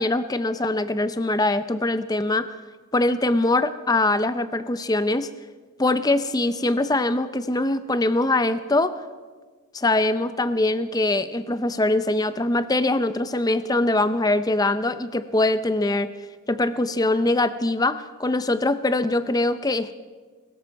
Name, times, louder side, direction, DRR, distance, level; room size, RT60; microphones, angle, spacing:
voice 1, 0.0-2.5 2.9-5.3 5.8-8.9 9.7-16.1 16.5-20.0, left 2 dB, 15° left, 12 dB, 0.5 m, -22 dB
22.0 x 14.0 x 4.6 m, 1.4 s
head